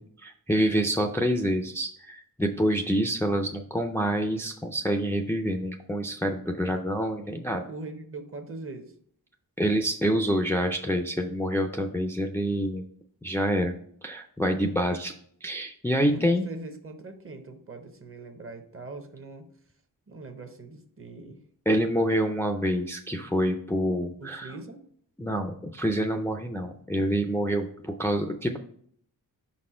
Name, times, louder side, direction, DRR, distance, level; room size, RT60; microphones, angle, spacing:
voice 1, 0.0-7.6 9.6-12.8 13.2-13.7 14.0-15.1 15.4-16.5 21.7-24.5 25.2-28.6, equal, 5° left, 3 dB, 0.4 m, -27 dB
voice 2, 7.2-8.9 15.9-19.5 20.1-21.4 24.2-24.8, right 2 dB, 40° right, 6 dB, 0.9 m, -41 dB
5.6 x 4.2 x 4.3 m, 0.63 s
wide cardioid pair, 140°, 35 cm